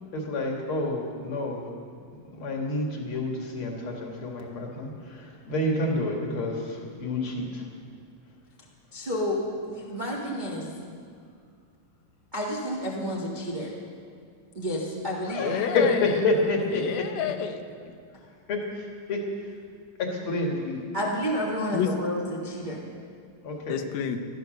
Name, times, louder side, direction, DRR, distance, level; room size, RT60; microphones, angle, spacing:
voice 1, 0.1-1.6 2.1-7.6 15.2-17.0 18.5-19.2 20.0-20.9 23.4-23.8, left 2 dB, 40° left, 0 dB, 2.3 m, -28 dB
voice 2, 8.9-10.7 12.3-13.7 14.5-15.7 20.9-22.8, equal, 50° right, -3 dB, 0.5 m, -30 dB
voice 3, 15.4-16.2 16.7-17.9 21.7-22.0 23.7-24.3, left 8 dB, 85° left, 7 dB, 2.8 m, -29 dB
15.5 x 12.5 x 6.5 m, 2.2 s
omnidirectional pair, 4.2 m